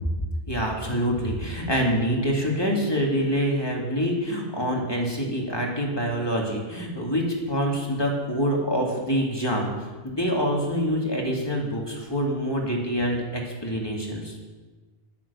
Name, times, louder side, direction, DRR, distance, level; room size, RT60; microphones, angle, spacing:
voice 1, 0.5-14.4, equal, 25° left, -1 dB, 2.4 m, -26 dB
11.5 x 9.2 x 7.0 m, 1.3 s
omnidirectional pair, 1.0 m